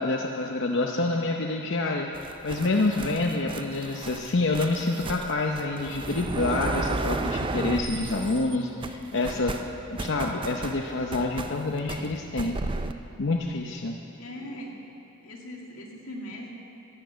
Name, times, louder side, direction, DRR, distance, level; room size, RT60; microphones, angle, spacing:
voice 1, 0.0-9.5 10.0-12.6 13.2-14.0, left 2 dB, 60° left, 1 dB, 0.8 m, -27 dB
sound 1, 2.1-8.6 8.8-12.9, right 3 dB, 25° right, 0.4 m, -34 dB
voice 2, 14.2-14.8 15.2-16.5, equal, 85° left, -1 dB, 2.2 m, -40 dB
12.0 x 11.5 x 7.9 m, 2.9 s
head